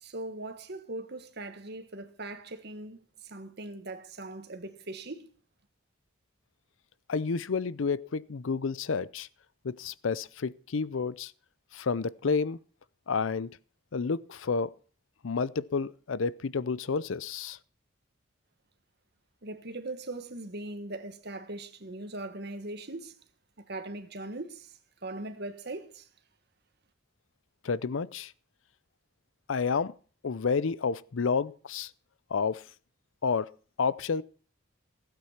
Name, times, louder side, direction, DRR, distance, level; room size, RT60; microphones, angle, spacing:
voice 1, 0.0-5.3 19.4-23.2 23.6-26.1, right 2 dB, 55° right, 1.6 m, -40 dB
voice 2, 7.1-9.3 9.6-11.3 11.7-12.6 13.1-13.6 13.9-14.7 15.2-17.6 27.6-28.3 29.5-29.9 30.2-31.9 32.3-32.6 33.2-34.2, left 5 dB, 75° left, 0.6 m, -30 dB
16.0 x 9.0 x 5.8 m
head